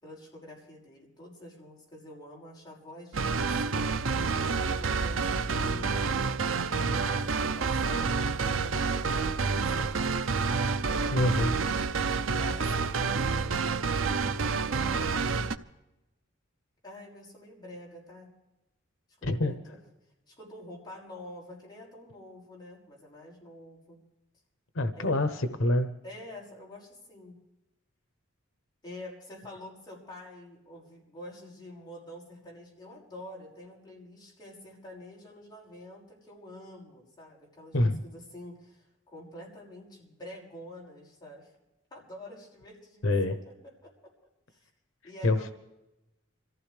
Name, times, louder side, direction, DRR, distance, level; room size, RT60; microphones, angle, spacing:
voice 1, 0.0-4.2 4.7-6.1 6.5-10.1 10.7-11.3 12.3-15.1 16.8-18.3 19.2-19.8 20.3-24.0 24.9-25.4 26.0-27.4 28.8-41.5 41.9-43.9 44.5-44.7 45.0-45.5, left 1 dB, 20° left, -3 dB, 6.0 m, -47 dB
sound 1, 3.1-15.6, right 4 dB, 80° right, 0.7 m, -28 dB
voice 2, 11.1-11.5 19.2-19.5 24.7-25.9 37.7-38.0 43.0-43.3 45.2-45.5, left 1 dB, 85° left, 9 dB, 1.0 m, -26 dB
26.5 x 15.0 x 3.4 m, 0.96 s
head